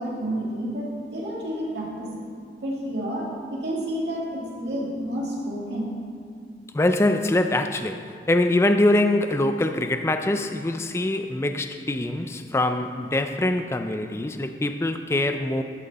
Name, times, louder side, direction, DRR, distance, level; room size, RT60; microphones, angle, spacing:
voice 1, 0.0-2.1 2.6-5.9, equal, 80° right, -4 dB, 2.2 m, -30 dB
voice 2, 6.7-8.0 8.3-15.6, left 1 dB, 15° left, 7 dB, 0.3 m, -23 dB
12.0 x 6.4 x 4.1 m, 2.2 s
head